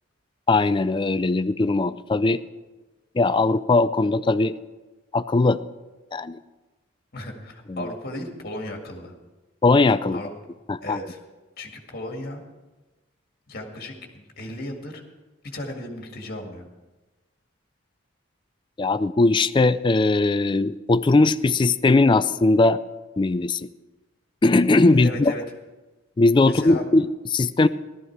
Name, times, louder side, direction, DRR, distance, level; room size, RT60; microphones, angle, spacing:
voice 1, 0.5-2.4 3.2-4.6 5.1-5.6 6.1-6.4 7.7-7.9 9.6-10.2 10.7-11.0 18.8-22.8 23.2-23.7 24.4-25.3 26.2-27.7, left 3 dB, 25° left, 13 dB, 0.3 m, -19 dB
voice 2, 7.1-9.1 10.1-10.3 10.8-11.2 11.6-12.4 13.5-15.0 15.4-16.7 24.9-25.4 26.4-26.9, left 1 dB, 45° left, 2 dB, 1.9 m, -35 dB
15.0 x 12.5 x 4.6 m, 1.2 s
head